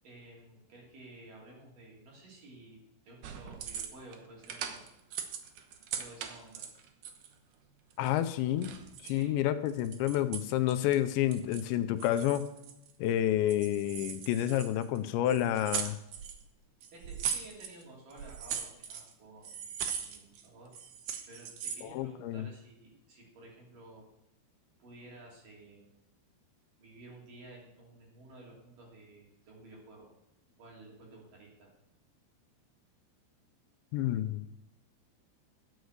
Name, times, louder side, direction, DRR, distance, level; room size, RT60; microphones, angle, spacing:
voice 1, 0.0-2.8 3.0-4.8 5.9-6.7 9.1-9.4 16.9-20.7 21.3-24.1 24.8-25.9 26.8-30.1 30.6-31.7, right 2 dB, 50° right, -2 dB, 4.3 m, -53 dB
sound 1, 3.2-4.2 4.4-7.3 7.9-9.2 9.7-11.0 11.3-11.8 12.0-13.1 13.5-15.0 15.3-16.4 16.8-17.8 18.1-19.1 19.4-20.5 20.7-21.9, right 8 dB, 80° right, 1.8 m, -40 dB
voice 2, 8.0-8.7 9.0-12.5 13.0-16.0 21.8-22.5 33.9-34.4, left 12 dB, 85° left, 11 dB, 2.9 m, -29 dB
12.0 x 8.0 x 6.6 m, 0.85 s
omnidirectional pair, 5.2 m